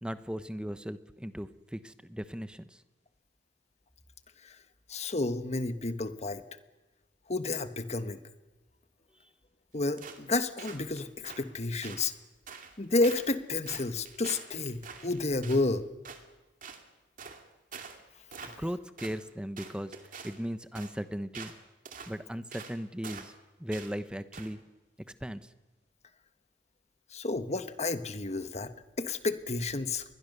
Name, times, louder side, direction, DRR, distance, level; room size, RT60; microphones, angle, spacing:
voice 1, 0.0-2.8 18.5-20.0 20.2-21.5 22.1-23.3 23.6-24.6 25.2-25.5, equal, 5° right, 12 dB, 1.0 m, -37 dB
voice 2, 4.9-6.4 7.3-8.2 9.7-12.1 12.8-15.9 27.1-28.7 29.0-30.0, left 2 dB, 40° left, 10 dB, 1.4 m, -31 dB
sound 1, 10.0-10.3 10.6-11.4 11.8-12.1 12.5-12.8 13.0-13.3 13.7-15.6 16.0-16.2 16.6-16.8 17.2-17.4 17.7-18.0 18.3-18.7 19.0-19.2 19.6-20.4 20.8-20.9 21.3-21.6 21.9-22.1 22.5-22.8 23.0-23.4 23.7-23.9 24.3-24.5, right 5 dB, 50° right, 2.5 m, -45 dB
27.5 x 21.5 x 6.9 m, 1.1 s
head